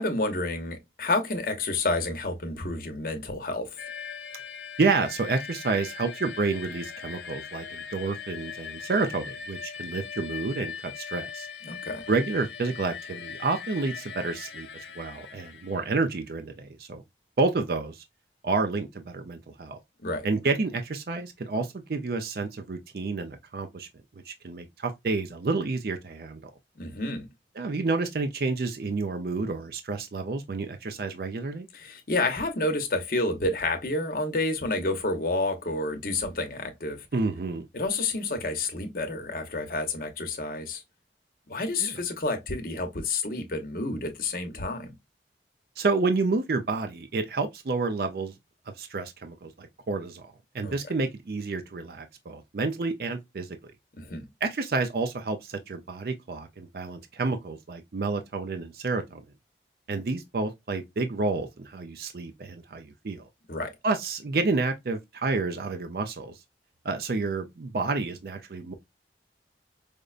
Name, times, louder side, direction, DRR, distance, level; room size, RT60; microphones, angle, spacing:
voice 1, 0.0-3.8 11.6-12.0 20.0-20.3 26.8-27.3 31.7-37.1 37.7-40.8 41.5-44.9 50.6-50.7 54.0-54.3 63.5-63.7, left 2 dB, 55° left, 0.8 m, -29 dB
sound 1, 3.8-16.2, left 7 dB, 85° left, 0.6 m, -40 dB
voice 2, 4.8-11.5 12.1-17.0 17.4-18.0 18.4-19.8 20.2-23.9 24.3-26.4 27.6-31.7 37.1-37.7 41.8-42.0 45.8-48.3 48.8-53.6 54.4-59.2 59.9-63.3 63.8-66.4 66.8-68.7, right 3 dB, 55° right, 0.5 m, -29 dB
5.0 x 2.1 x 2.4 m
head